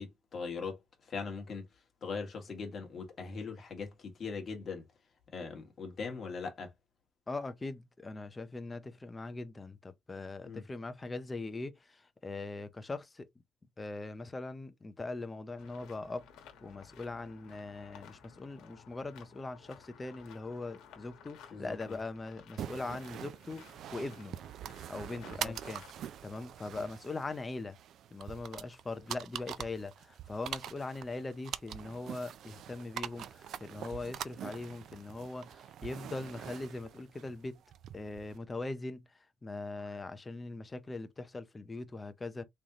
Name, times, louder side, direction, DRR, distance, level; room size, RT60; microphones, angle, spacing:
voice 1, 0.0-1.6 2.0-4.8 5.3-6.7 10.4-10.6 21.5-22.0 25.3-25.5 26.7-26.8, left 5 dB, 35° left, 1.5 m, -40 dB
voice 2, 7.3-13.3 13.8-16.2 16.6-24.3 24.9-25.8 26.2-27.8 28.1-37.6 37.9-39.1 39.4-42.4, left 3 dB, 15° left, 0.5 m, -41 dB
sound 1, 15.6-26.2, left 7 dB, 85° left, 1.1 m, -57 dB
sound 2, 22.6-38.4, right 10 dB, 60° right, 0.3 m, -44 dB
3.8 x 3.3 x 2.8 m
cardioid pair, 145°, 0 cm